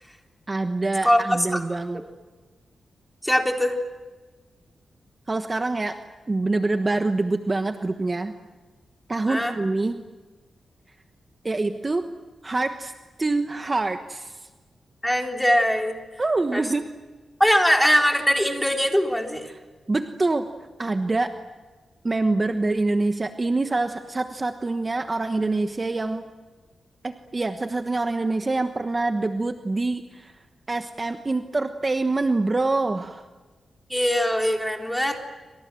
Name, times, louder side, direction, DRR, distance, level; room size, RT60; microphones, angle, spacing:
voice 1, 0.5-2.0 5.3-6.0 6.3-8.3 9.1-9.9 11.4-12.1 12.4-12.9 13.2-14.5 16.2-16.9 19.5-19.6 19.9-20.5 20.8-21.3 22.0-26.2 27.0-30.3 30.7-33.2, right 2 dB, 30° right, 7 dB, 1.2 m, -25 dB
voice 2, 1.0-1.6 1.9-2.0 3.2-3.8 9.3-9.5 15.0-16.0 16.5-16.6 17.4-19.5 33.9-35.2, equal, 5° left, 2 dB, 3.9 m, -21 dB
28.5 x 26.0 x 7.7 m, 1.3 s
cardioid pair, 90°, 0 cm